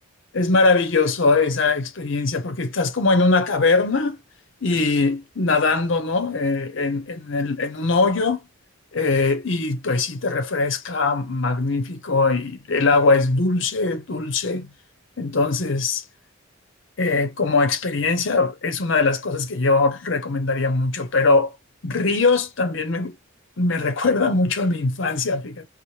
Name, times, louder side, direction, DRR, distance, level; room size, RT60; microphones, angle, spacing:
voice 1, 0.3-4.2 4.6-8.4 8.9-14.7 15.2-16.0 17.0-21.5 21.8-23.1 23.6-25.7, left 3 dB, 60° left, 0.7 m, -21 dB
4.2 x 2.0 x 3.2 m
head